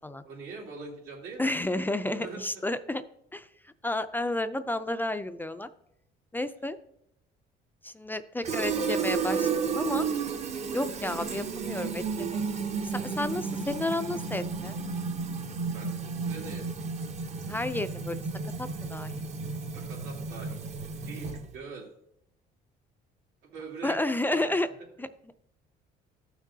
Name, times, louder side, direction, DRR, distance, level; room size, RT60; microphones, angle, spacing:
voice 1, 0.2-1.5 2.1-2.4 8.6-9.0 15.5-15.9 16.2-16.7 19.7-20.6 21.0-21.9 23.4-24.0 24.3-24.5, right 4 dB, 85° right, -2 dB, 3.0 m, -43 dB
voice 2, 1.4-3.0 3.3-3.5 3.8-5.7 6.3-6.8 7.8-10.1 10.7-12.4 12.8-14.8 17.5-18.2 18.6-19.2 23.8-24.7 25.0-25.1, left 2 dB, 10° left, 11 dB, 0.4 m, -31 dB
Fill (with liquid), 8.4-21.6, right 5 dB, 40° right, 0.8 m, -32 dB
14.0 x 6.0 x 2.7 m, 0.76 s
cardioid pair, 110°, 17 cm